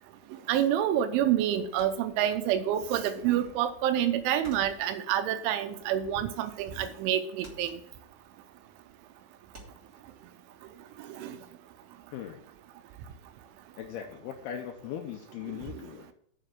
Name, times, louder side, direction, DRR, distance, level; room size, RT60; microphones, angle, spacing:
voice 1, 0.5-7.8 11.2-11.3, right 10 dB, 85° right, 10 dB, 3.1 m, -28 dB
sound 1, 1.8-2.8 3.1-6.4 6.7-7.1 7.4-10.0, right 1 dB, 20° right, 2.5 m, -53 dB
voice 2, 12.1-12.4 13.8-16.1, left 9 dB, 85° left, 4 dB, 2.2 m, -39 dB
7.8 x 6.7 x 6.5 m, 0.69 s
omnidirectional pair, 5.5 m